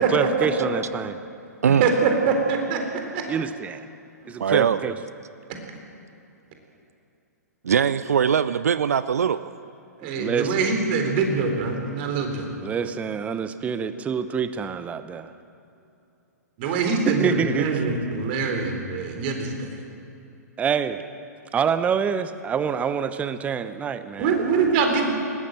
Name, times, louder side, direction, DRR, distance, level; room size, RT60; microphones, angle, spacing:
voice 1, 0.1-1.2 3.3-3.8 4.3-4.9 10.0-10.6 12.6-15.3 16.6-16.8 17.1-17.7 20.6-21.0 21.5-24.4, right 7 dB, 15° right, 12 dB, 0.9 m, -26 dB
voice 2, 1.8-2.8 3.1-3.2 4.2-4.3 10.0-12.5 16.6-19.7 24.2-25.1, right 4 dB, 40° right, 4 dB, 3.8 m, -23 dB
voice 3, 4.4-4.9 7.6-9.5, right 7 dB, 60° right, 15 dB, 0.6 m, -21 dB
20.0 x 18.0 x 7.7 m, 2.7 s
figure-of-eight pair, 115°, 9 cm